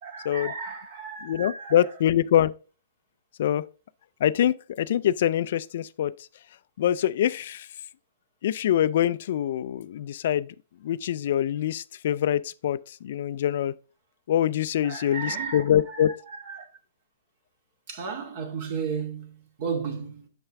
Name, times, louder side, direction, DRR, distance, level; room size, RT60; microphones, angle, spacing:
voice 1, 0.0-1.8 14.8-16.7 17.9-20.3, right 5 dB, 45° right, 2.2 m, -34 dB
voice 2, 1.2-2.5 3.4-3.6 4.2-6.1 6.8-7.7 8.4-10.5 10.8-13.8 14.3-16.1, left 11 dB, 55° left, 0.4 m, -24 dB
6.8 x 5.7 x 3.5 m
hypercardioid pair, 145°, 0 cm